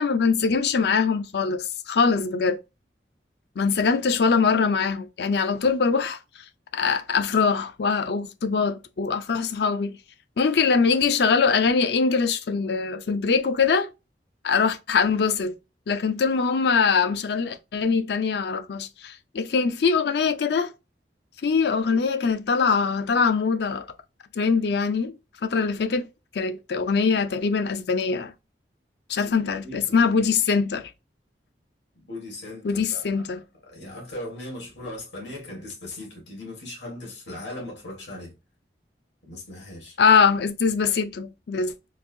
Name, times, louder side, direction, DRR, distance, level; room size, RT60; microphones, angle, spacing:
voice 1, 0.0-2.6 3.6-6.2 6.7-10.0 10.4-13.9 14.4-15.6 15.9-20.7 21.4-23.9 24.4-25.2 25.4-26.1 26.3-28.3 29.1-30.9 32.6-33.4 40.0-41.9, left 5 dB, 65° left, 0.4 m, -22 dB
voice 2, 29.6-30.0 32.0-33.2 33.7-38.3 39.2-40.0, left 1 dB, 80° left, 1.9 m, -38 dB
3.9 x 2.6 x 2.6 m
head